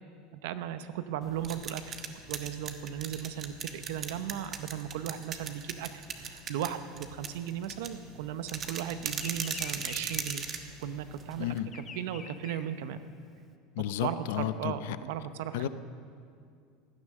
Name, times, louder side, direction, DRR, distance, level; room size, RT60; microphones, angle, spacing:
voice 1, 0.3-2.0 2.3-10.5 10.8-13.0 14.0-15.7, right 10 dB, 75° right, 12 dB, 0.8 m, -36 dB
sound 1, 1.2-11.6, right 6 dB, 30° right, 1.1 m, -39 dB
Bird vocalization bird call bird song, 5.6-8.5 8.7-13.5, left 6 dB, 30° left, 0.9 m, -47 dB
voice 2, 13.8-14.7 15.5-15.7, left 12 dB, 80° left, 13 dB, 0.6 m, -32 dB
16.5 x 9.8 x 6.6 m, 2.3 s
supercardioid pair, 125°, 0 cm